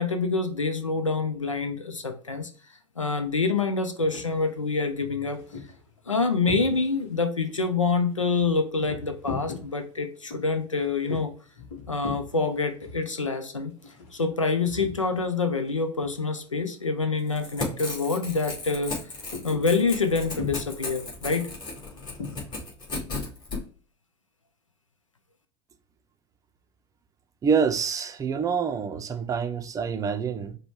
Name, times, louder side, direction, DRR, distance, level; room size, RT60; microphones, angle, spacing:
voice 1, 0.0-2.5 3.0-5.4 6.1-11.3 11.9-13.7 14.1-19.0 19.4-21.5, left 4 dB, 85° left, 0.5 m, -26 dB
sound 1, 4.0-4.4 4.9-7.1 7.5-15.4 15.6-16.7 17.0-17.3 17.6-18.1 18.4-22.6, left 4 dB, 60° left, 1.1 m, -40 dB
Crackle / Tearing, 17.2-23.6, left 3 dB, 30° left, 1.9 m, -35 dB
voice 2, 27.4-30.6, right 6 dB, 20° right, 0.5 m, -26 dB
4.9 x 2.2 x 4.5 m
figure-of-eight pair, 80°, 16 cm